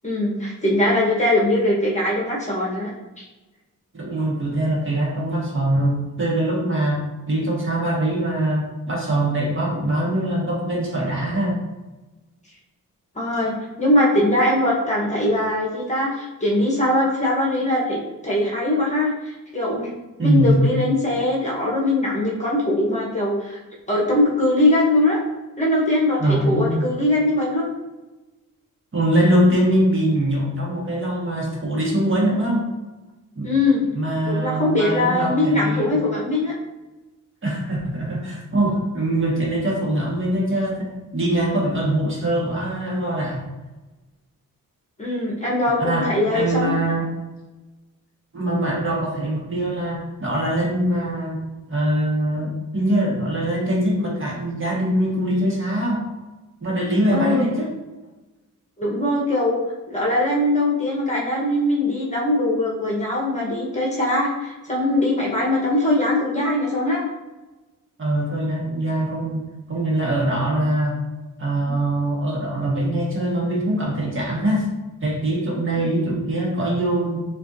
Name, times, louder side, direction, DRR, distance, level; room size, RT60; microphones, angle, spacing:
voice 1, 0.0-2.9 3.2-3.3 13.1-19.9 20.2-23.6 23.9-25.2 25.6-27.7 33.4-33.8 34.2-36.5 45.0-46.7 57.1-57.4 58.8-59.6 59.9-67.1 75.7-75.9, left 1 dB, 20° left, -4 dB, 1.1 m, -21 dB
voice 2, 3.9-11.6 20.2-20.6 26.2-26.8 28.9-32.7 33.3-33.5 33.9-36.0 37.4-43.4 45.8-47.1 48.3-51.4 51.7-56.0 56.6-57.7 68.0-69.4 69.7-71.0 71.4-74.7 75.0-77.2, right 1 dB, 35° right, -4 dB, 1.5 m, -22 dB
6.7 x 2.6 x 2.6 m, 1.1 s
wide cardioid pair, 110°, 34 cm